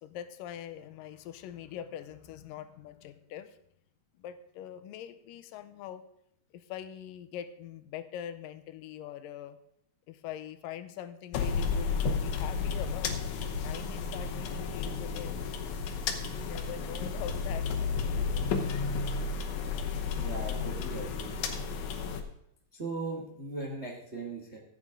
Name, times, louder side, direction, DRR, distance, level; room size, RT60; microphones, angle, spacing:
voice 1, 0.0-3.6 4.2-6.0 6.5-9.6 10.1-13.2 13.6-15.4 16.2-17.7, left 10 dB, 90° left, 11 dB, 2.3 m, -43 dB
driving a car in the city (stereo), 11.3-22.2, left 5 dB, 70° left, 2.2 m, -32 dB
voice 2, 20.1-21.4 22.7-24.6, right 3 dB, 75° right, -2 dB, 0.6 m, -38 dB
14.5 x 8.8 x 3.7 m, 0.72 s
omnidirectional pair, 3.9 m